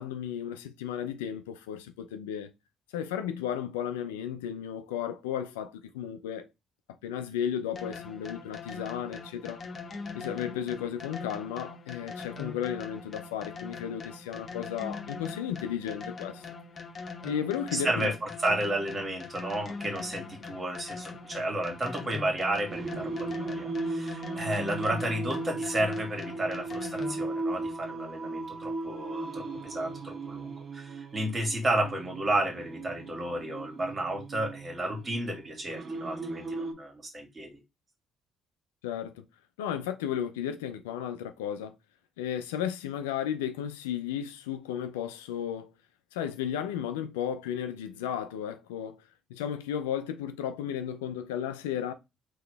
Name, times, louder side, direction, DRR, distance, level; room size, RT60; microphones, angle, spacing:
voice 1, 0.0-2.5 2.9-6.5 7.0-9.6 10.1-16.4 17.2-18.1 38.8-39.2 39.6-41.7 42.2-45.7 46.1-49.0 49.3-51.9, left 9 dB, 85° left, 0.4 m, -34 dB
sound 1, 7.8-27.4, left 4 dB, 45° left, 1.0 m, -42 dB
voice 2, 17.7-37.6, right 1 dB, 35° right, 2.0 m, -32 dB
Singing, 22.7-36.7, right 2 dB, 55° right, 0.9 m, -37 dB
3.8 x 2.9 x 3.3 m
hypercardioid pair, 50°, 0 cm